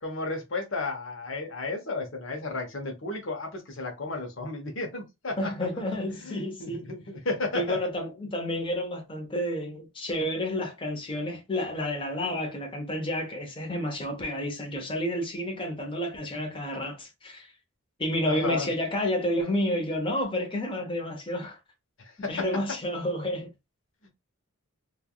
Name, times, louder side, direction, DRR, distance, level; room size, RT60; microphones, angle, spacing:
voice 1, 0.0-5.5 5.9-7.8 18.2-18.7 22.2-22.5 24.0-24.1, left 3 dB, 60° left, 0.9 m, -33 dB
voice 2, 5.4-6.8 7.5-17.5 18.0-21.6 22.3-23.5, left 1 dB, 25° left, 0.7 m, -30 dB
3.3 x 2.3 x 2.2 m
head